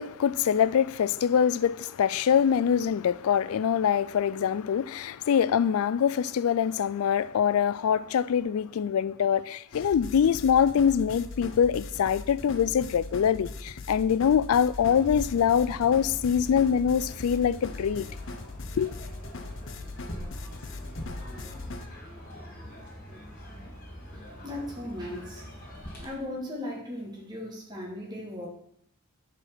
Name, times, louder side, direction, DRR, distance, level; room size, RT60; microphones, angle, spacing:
voice 1, 0.0-18.1 18.8-18.9, left 8 dB, 75° left, 0.3 m, -24 dB
sound 1, 9.7-21.9, left 3 dB, 55° left, 0.7 m, -40 dB
sound 2, 14.7-26.1, equal, 40° left, 2.7 m, -43 dB
voice 2, 24.1-25.4 26.0-28.5, left 1 dB, 20° right, 1.9 m, -37 dB
10.0 x 4.5 x 6.0 m
head